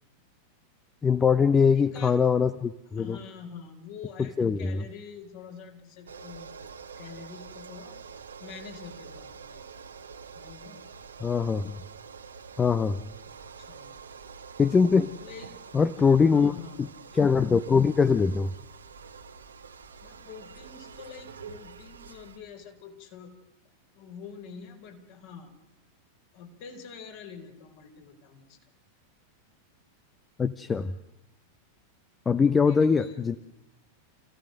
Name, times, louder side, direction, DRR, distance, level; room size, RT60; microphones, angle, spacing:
voice 1, 1.0-3.2 4.4-4.8 11.2-11.8 12.6-13.0 14.6-15.1 15.7-16.5 16.8-16.9 17.1-18.5 30.4-30.9 32.3-33.4, left 5 dB, 15° left, 13 dB, 0.7 m, -22 dB
voice 2, 1.7-2.2 2.9-6.6 6.9-8.0 8.4-9.6 10.3-10.9 13.3-14.0 15.2-17.0 20.0-23.3 23.9-25.5 26.3-28.6 32.4-33.3, left 6 dB, 50° left, 3 dB, 4.2 m, -46 dB
sound 1, 6.1-22.4, right 5 dB, 70° right, 1.3 m, -46 dB
28.5 x 16.5 x 6.5 m, 0.91 s
figure-of-eight pair, 90°, 0 cm